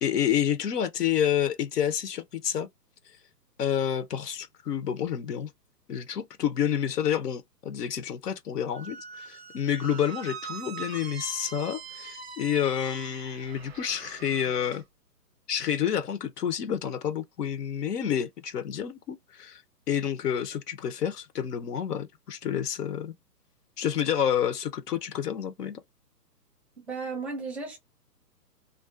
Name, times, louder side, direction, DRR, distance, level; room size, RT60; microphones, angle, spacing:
voice 1, 0.0-2.7 3.6-5.5 5.9-14.8 15.5-19.6 19.9-23.1 23.8-25.8, left 9 dB, 70° left, 0.7 m, -29 dB
Squeak, 8.7-14.8, right 6 dB, 40° right, 0.5 m, -43 dB
voice 2, 26.8-27.8, right 4 dB, 5° left, 0.6 m, -34 dB
2.4 x 2.2 x 2.3 m
hypercardioid pair, 165°, 50 cm